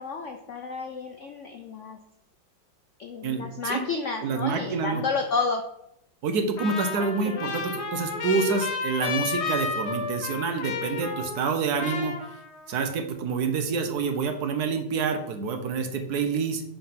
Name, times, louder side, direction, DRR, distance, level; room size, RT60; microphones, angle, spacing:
voice 1, 0.0-2.0 3.0-5.6 7.2-7.5, left 4 dB, 70° left, 4 dB, 0.7 m, -31 dB
voice 2, 3.2-3.8 4.2-5.0 6.2-12.2 12.7-16.7, right 5 dB, 65° right, 6 dB, 1.3 m, -27 dB
Trumpet, 6.6-11.5 11.8-12.8, left 5 dB, 50° left, 0.9 m, -32 dB
5.5 x 4.3 x 5.7 m, 0.77 s
omnidirectional pair, 2.0 m